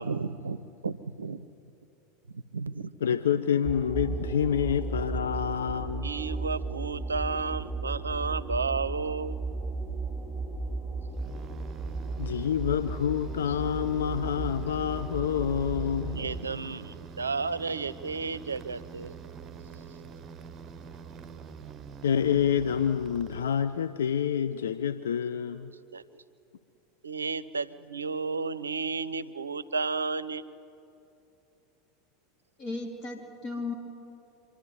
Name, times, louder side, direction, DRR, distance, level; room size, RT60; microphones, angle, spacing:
voice 1, 0.0-1.5 2.3-2.9 4.0-4.2 6.0-9.4 16.1-19.2 25.9-26.2 27.0-30.4, right 4 dB, 85° right, 16 dB, 0.5 m, -33 dB
voice 2, 3.0-6.1 12.2-16.2 22.0-25.7, left 8 dB, 75° left, 10 dB, 0.6 m, -27 dB
sound 1, 3.6-16.4, right 3 dB, 5° right, 3.4 m, -35 dB
sound 2, 11.1-24.0, right 6 dB, 35° right, 0.9 m, -45 dB
voice 3, 32.6-33.7, left 3 dB, 45° left, 2 dB, 3.6 m, -35 dB
26.0 x 11.5 x 9.7 m, 2.8 s
figure-of-eight pair, 85°, 0 cm